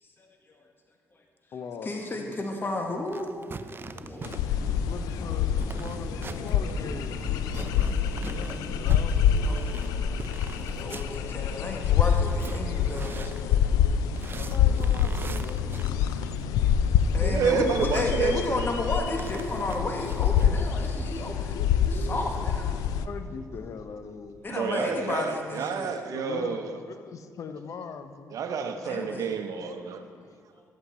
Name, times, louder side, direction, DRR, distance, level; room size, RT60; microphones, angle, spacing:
voice 1, 0.0-0.6 1.8-3.3 4.1-4.2 4.4-4.6 9.4-10.1 10.5-13.7 17.1-21.6 21.9-22.7 24.4-26.0 28.8-29.3 30.5-30.6, left 2 dB, 35° left, 2 dB, 1.2 m, -33 dB
voice 2, 1.5-2.5 4.5-8.0 8.3-9.7 14.3-16.1 22.9-24.5 26.1-28.4 30.0-30.4, left 5 dB, 60° left, 9 dB, 0.7 m, -41 dB
sound 1, 3.1-16.5 18.1-20.5, right 4 dB, 35° right, 0.5 m, -44 dB
sound 2, 3.8-8.8, equal, 5° left, 2.1 m, -42 dB
sound 3, 4.2-23.0, left 8 dB, 90° left, 0.4 m, -26 dB
voice 3, 17.2-18.6 24.5-26.8 28.3-30.0, right 5 dB, 70° right, 7 dB, 0.9 m, -29 dB
13.0 x 8.1 x 4.3 m, 2.2 s
supercardioid pair, 60°, 6 cm